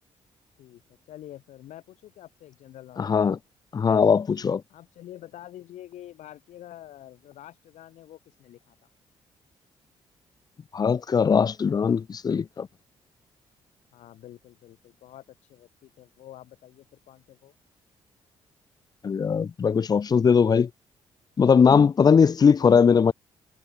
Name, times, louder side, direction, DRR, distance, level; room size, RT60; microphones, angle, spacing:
voice 1, 0.6-3.3 4.7-8.8 13.9-17.5 22.6-23.1, left 13 dB, 85° left, 6.1 m, -47 dB
voice 2, 3.0-3.4 3.7-4.6 10.7-12.7 19.0-20.7 21.4-23.1, left 6 dB, 35° left, 0.4 m, -20 dB
cardioid pair, 65°, 12 cm